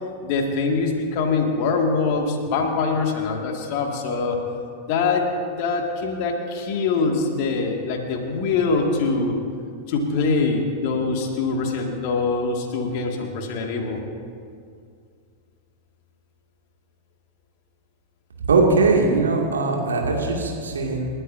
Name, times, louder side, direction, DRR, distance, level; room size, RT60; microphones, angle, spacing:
voice 1, 0.2-4.4 4.9-9.4 9.9-14.0, left 4 dB, 45° left, 2 dB, 2.2 m, -23 dB
voice 2, 18.5-21.1, right 3 dB, 70° right, 0 dB, 2.4 m, -20 dB
29.0 x 12.5 x 2.8 m, 2.3 s
figure-of-eight pair, 90°, 0 cm